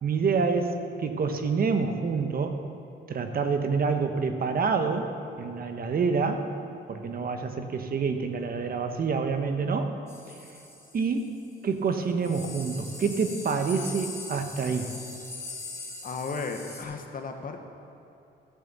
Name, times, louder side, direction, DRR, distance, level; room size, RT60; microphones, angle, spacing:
voice 1, 0.0-2.6 3.1-6.5 6.9-9.9 10.3-10.4 10.9-11.4 11.6-15.0, right 5 dB, 50° right, 6 dB, 1.0 m, -27 dB
sound 1, 10.1-11.5 11.9-12.0 12.2-16.8, left 3 dB, 15° left, 2.4 m, -41 dB
voice 2, 16.0-17.6, left 4 dB, 45° left, 5 dB, 1.2 m, -34 dB
12.5 x 6.8 x 6.9 m, 2.8 s
cardioid pair, 90°, 20 cm